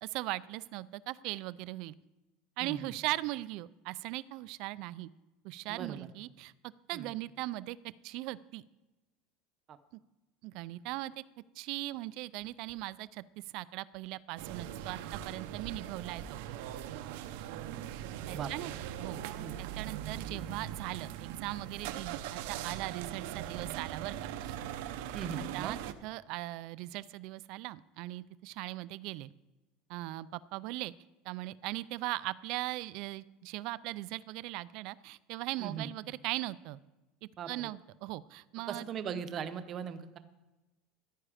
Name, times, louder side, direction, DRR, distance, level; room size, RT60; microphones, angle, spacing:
voice 1, 0.0-2.0 2.6-5.1 5.4-6.5 6.9-7.8 8.0-8.6 10.4-11.2 11.6-13.2 13.5-16.4 18.3-18.7 19.0-19.2 19.6-24.6 25.4-29.3 29.9-30.9 31.2-36.8 37.5-38.9, right 18 dB, 50° right, 19 dB, 0.4 m, -39 dB
voice 2, 2.6-2.9 5.7-6.1 6.9-7.1 9.7-9.8 18.3-18.7 19.4-19.6 25.1-25.7 35.6-35.9 37.4-37.7 38.7-40.2, right 7 dB, 30° right, 11 dB, 0.7 m, -39 dB
sound 1, 14.4-25.9, right 10 dB, 65° right, 0.7 m, -41 dB
14.5 x 10.0 x 5.0 m, 1.1 s
cardioid pair, 175°, 0 cm